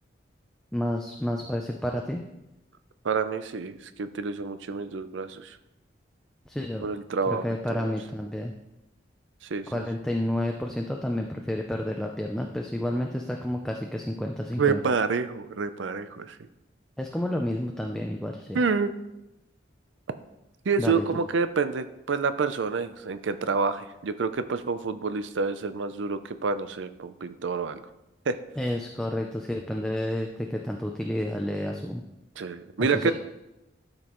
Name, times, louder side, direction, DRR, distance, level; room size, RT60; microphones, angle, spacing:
voice 1, 0.7-2.2 6.5-6.9 7.3-8.5 9.7-14.8 17.0-18.6 20.8-21.0 28.6-32.0 32.8-33.1, left 1 dB, 5° left, 1 dB, 0.4 m, -30 dB
voice 2, 3.0-5.6 6.8-7.4 7.8-7.9 9.4-9.7 14.6-16.4 18.5-18.9 20.7-27.8 28.3-28.4 32.4-33.1, right 5 dB, 80° right, 11 dB, 0.5 m, -28 dB
12.0 x 5.2 x 3.0 m, 0.94 s
head